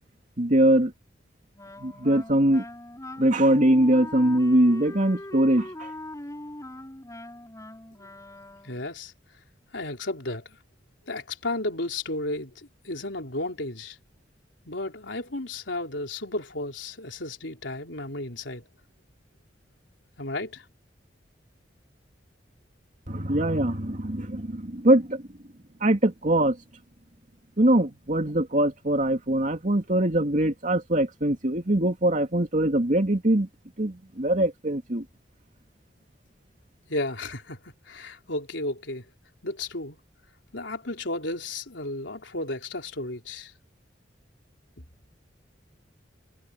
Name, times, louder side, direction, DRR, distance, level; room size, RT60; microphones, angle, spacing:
voice 1, 0.4-0.9 1.8-2.6 3.2-5.9 23.1-25.2 25.8-26.6 27.6-33.5 33.8-35.0, right 1 dB, 45° right, 2.6 m, -22 dB
Wind instrument woodwind instrument, 1.6-8.9, left 1 dB, 20° left, 6.4 m, -41 dB
voice 2, 8.6-9.1 9.7-10.6 11.1-14.0 14.7-18.7 20.2-20.7 36.9-39.0 39.4-40.0 40.5-43.5, left 2 dB, 80° left, 3.8 m, -33 dB
head